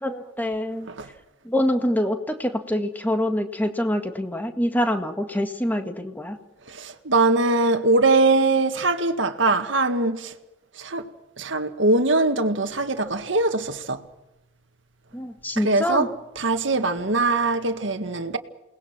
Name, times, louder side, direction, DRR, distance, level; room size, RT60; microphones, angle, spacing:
voice 1, 0.0-0.9 1.5-6.4 15.1-16.1, left 1 dB, 10° left, 1.7 m, -25 dB
voice 2, 6.7-10.3 10.8-11.1 11.4-14.0 15.6-18.4, right 3 dB, 75° right, 1.8 m, -22 dB
29.0 x 19.5 x 6.1 m
head